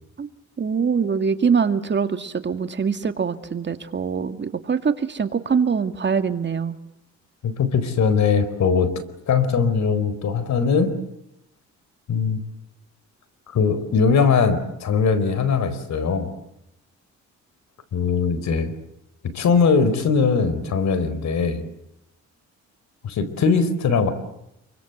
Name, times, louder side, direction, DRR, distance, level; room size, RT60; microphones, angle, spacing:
voice 1, 0.6-6.8, right 6 dB, 35° right, 8 dB, 2.1 m, -23 dB
voice 2, 7.4-8.9 9.3-10.9 12.1-12.4 13.5-16.3 17.9-18.7 19.3-21.6 23.0-24.1, left 5 dB, 65° left, 13 dB, 4.4 m, -20 dB
28.0 x 24.0 x 8.0 m, 0.82 s
cardioid pair, 90°, 30 cm